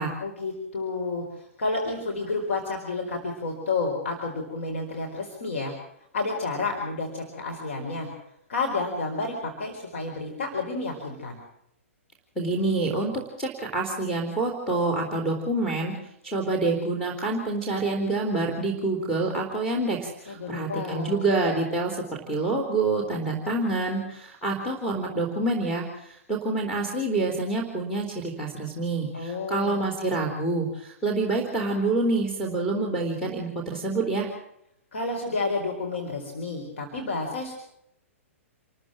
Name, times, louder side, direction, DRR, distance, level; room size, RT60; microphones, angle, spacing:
voice 1, 0.2-5.7 6.1-8.1 8.5-11.4 20.3-21.3 29.1-29.8 34.9-37.5, left 3 dB, 60° left, 1 dB, 4.7 m, -30 dB
voice 2, 12.4-15.9 16.2-34.3, right 2 dB, 5° left, 0 dB, 3.7 m, -27 dB
28.0 x 14.0 x 7.6 m, 0.77 s
figure-of-eight pair, 110°, 7 cm